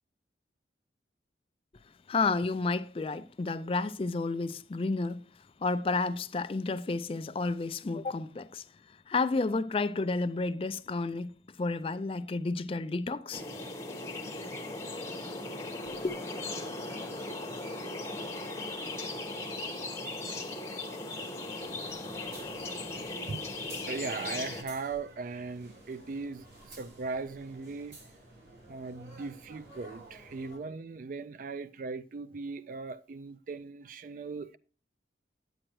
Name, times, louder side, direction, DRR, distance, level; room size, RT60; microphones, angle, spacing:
voice 1, 2.1-5.3 5.6-8.6 9.1-13.4 15.9-16.2, left 3 dB, 30° left, 0.4 m, -31 dB
sound 1, 13.3-24.6, left 2 dB, 15° left, 1.3 m, -38 dB
sound 2, 21.6-30.6, right 2 dB, 70° right, 5.7 m, -53 dB
voice 2, 23.9-28.0 28.7-34.6, right 4 dB, 45° right, 0.3 m, -38 dB
8.8 x 8.8 x 3.1 m
head